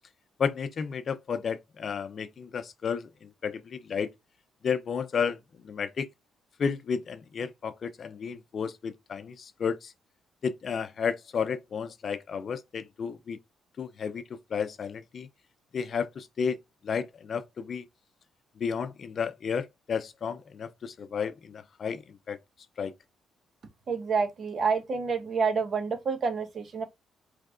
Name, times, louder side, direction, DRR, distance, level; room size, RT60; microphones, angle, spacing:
voice 1, 0.4-4.1 4.6-6.1 6.6-9.9 10.4-13.4 13.8-15.3 15.7-16.6 16.8-17.9 18.6-22.0 22.3-22.4 22.8-22.9, left 6 dB, 50° left, 0.6 m, -32 dB
voice 2, 23.9-26.8, right 5 dB, 50° right, 1.1 m, -28 dB
4.5 x 3.3 x 2.5 m
cardioid pair, 90°, 0 cm